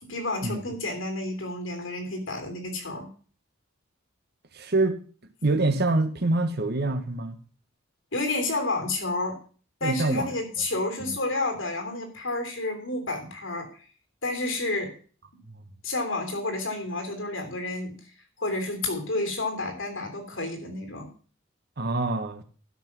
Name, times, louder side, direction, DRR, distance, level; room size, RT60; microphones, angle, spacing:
voice 1, 0.0-3.1 8.1-9.4 9.8-13.7 14.2-14.9 15.8-17.9 18.4-21.1, left 2 dB, 75° left, 3.2 m, -30 dB
voice 2, 4.5-5.0 5.4-7.4 9.8-10.3 11.0-11.2 15.5-15.6 21.8-22.4, right 2 dB, 55° right, 1.2 m, -25 dB
12.0 x 6.0 x 6.0 m
head